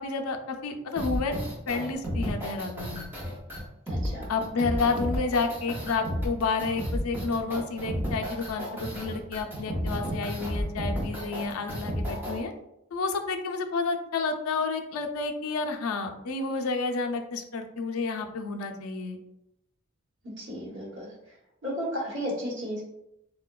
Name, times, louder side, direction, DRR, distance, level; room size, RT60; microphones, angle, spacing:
voice 1, 0.0-3.0 4.3-12.5 12.9-19.2, left 4 dB, 85° left, 5 dB, 0.4 m, -30 dB
sound 1, 1.0-12.4, equal, 10° right, 0.4 m, -32 dB
voice 2, 3.9-4.3 20.4-21.1 21.6-22.8, equal, 55° right, -4 dB, 1.0 m, -33 dB
3.6 x 2.1 x 2.2 m, 0.83 s
head